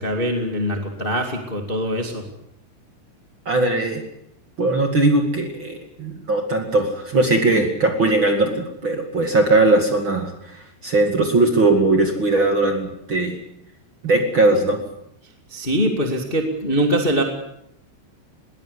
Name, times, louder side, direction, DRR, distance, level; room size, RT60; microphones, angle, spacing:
voice 1, 0.0-2.2 15.5-17.2, equal, 85° left, 3 dB, 0.5 m, -23 dB
voice 2, 3.4-4.0 4.6-13.4 14.0-14.8, right 2 dB, 45° right, 4 dB, 1.7 m, -19 dB
21.0 x 19.0 x 8.3 m, 0.78 s
omnidirectional pair, 5.6 m